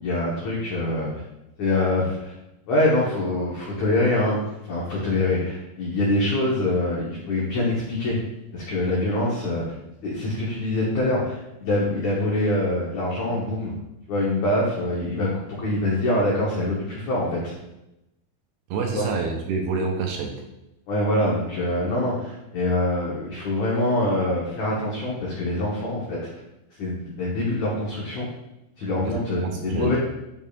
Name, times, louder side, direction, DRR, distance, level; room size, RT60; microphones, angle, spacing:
voice 1, 0.0-1.1 1.6-2.3 2.7-4.4 4.7-8.2 8.5-9.6 10.0-13.7 14.1-15.3 15.6-17.5 18.9-19.1 20.9-26.2 26.8-28.3 28.8-30.0, left 1 dB, 80° left, -5 dB, 1.6 m, -24 dB
voice 2, 18.7-20.3 29.0-30.0, right 4 dB, 80° right, 2 dB, 2.5 m, -27 dB
8.3 x 5.3 x 2.4 m, 0.91 s
omnidirectional pair, 4.9 m